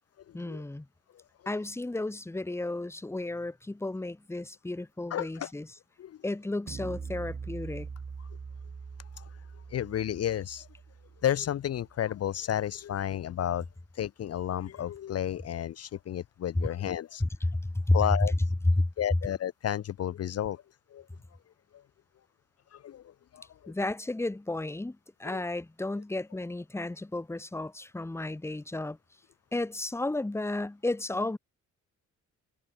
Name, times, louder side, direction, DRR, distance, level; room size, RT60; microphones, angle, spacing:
voice 1, 0.3-0.8 1.5-5.7 6.2-7.9 17.2-17.5 17.9-18.3 18.7-18.9 23.7-29.0 29.5-31.4, left 2 dB, 10° left, 1.2 m, -32 dB
voice 2, 5.1-5.5 6.0-6.2 9.2-9.3 9.7-10.7 11.2-13.6 14.0-17.2 17.9-18.3 19.0-20.6 20.9-21.0 22.7-23.0 23.3-23.5 25.2-25.4, left 10 dB, 55° left, 0.8 m, -32 dB
sound 1, 6.7-12.0, right 5 dB, 30° right, 1.9 m, -42 dB
cardioid pair, 90°, 30 cm